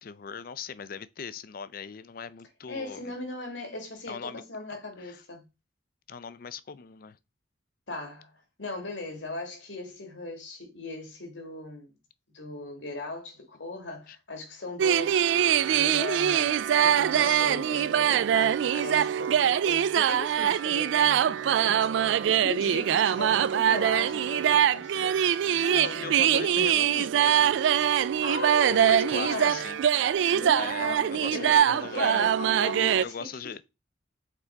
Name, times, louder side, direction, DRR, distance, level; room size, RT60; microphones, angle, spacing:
voice 1, 0.0-3.0 4.1-4.4 4.7-5.2 6.1-7.2 14.1-14.2 17.1-17.4 18.7-18.8 23.1-23.4 25.6-27.6 28.7-29.8 30.6-32.2 33.0-33.6, left 6 dB, 50° left, 0.5 m, -39 dB
voice 2, 2.7-5.5 7.9-8.3 8.6-11.9 12.3-15.3 15.7-26.1 28.2-29.6 30.3-33.5, left 2 dB, 85° left, 2.1 m, -38 dB
sound 1, 14.8-33.0, right 9 dB, 75° right, 0.3 m, -23 dB
5.9 x 3.9 x 4.5 m
head